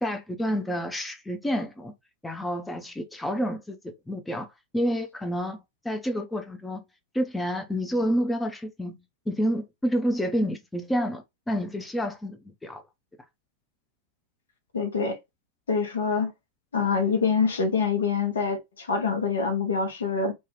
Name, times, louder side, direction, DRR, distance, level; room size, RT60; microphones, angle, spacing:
voice 1, 0.0-1.9 2.2-4.5 4.7-6.8 7.1-9.0 9.3-12.8, equal, 5° left, 0.5 m, -29 dB
voice 2, 14.7-15.2 15.7-16.3 16.7-20.3, left 5 dB, 70° left, 0.9 m, -25 dB
2.8 x 2.3 x 3.0 m
figure-of-eight pair, 90°, 0 cm